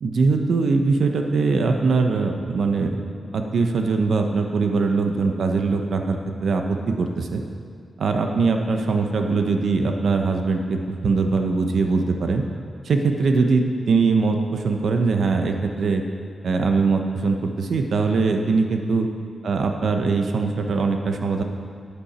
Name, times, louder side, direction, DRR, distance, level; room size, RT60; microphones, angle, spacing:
voice 1, 0.0-3.0 3.3-7.4 8.0-12.4 12.8-16.0 16.4-19.1 19.4-21.4, right 4 dB, 70° right, 4 dB, 0.9 m, -21 dB
11.5 x 8.7 x 4.3 m, 2.2 s
wide cardioid pair, 120°, 0 cm